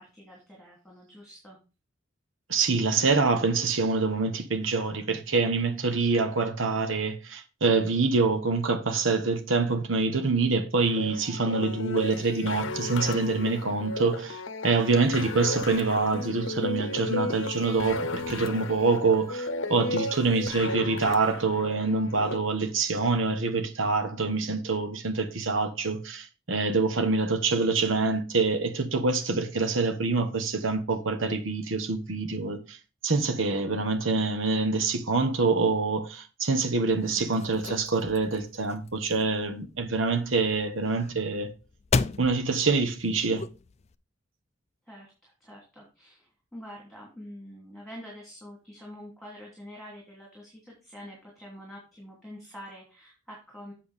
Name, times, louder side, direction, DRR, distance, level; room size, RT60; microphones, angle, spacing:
voice 1, 0.0-1.6 44.9-53.7, equal, ahead, 2.9 m, -46 dB
voice 2, 2.5-14.4 14.6-32.8 33.0-41.5 42.2-43.4, right 3 dB, 70° right, 1.2 m, -26 dB
sound 1, 10.8-22.4, left 2 dB, 65° left, 0.8 m, -34 dB
sound 2, 36.9-43.9, left 4 dB, 35° left, 0.4 m, -36 dB
7.8 x 6.9 x 3.5 m
head